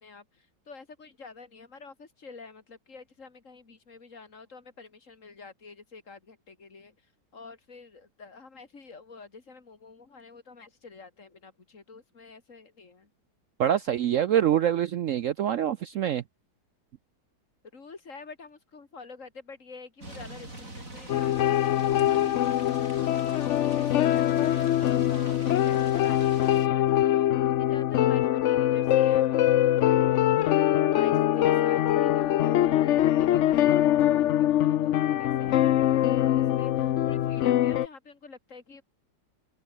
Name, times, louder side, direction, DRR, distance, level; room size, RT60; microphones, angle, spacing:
voice 1, 0.0-6.9 7.3-13.1 17.7-23.5 23.8-29.5 30.4-38.8, left 4 dB, 45° left, 2.7 m, -48 dB
voice 2, 13.6-16.2, right 10 dB, 65° right, 0.8 m, -25 dB
sound 1, 20.0-26.7, right 2 dB, 45° right, 7.6 m, -44 dB
sound 2, 21.1-37.9, left 12 dB, 75° left, 0.6 m, -23 dB
omnidirectional pair, 1.9 m